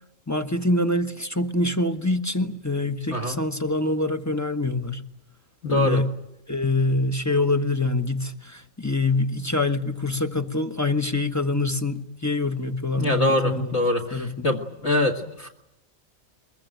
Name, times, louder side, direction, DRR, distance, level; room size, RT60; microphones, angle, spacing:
voice 1, 0.3-5.0 5.7-6.1 6.5-13.7 14.1-14.4, left 2 dB, 15° left, 7 dB, 1.1 m, -25 dB
voice 2, 5.6-6.0 13.0-14.0 14.4-15.5, left 1 dB, 60° left, -2 dB, 2.3 m, -23 dB
23.0 x 22.5 x 9.1 m, 0.83 s
omnidirectional pair, 1.3 m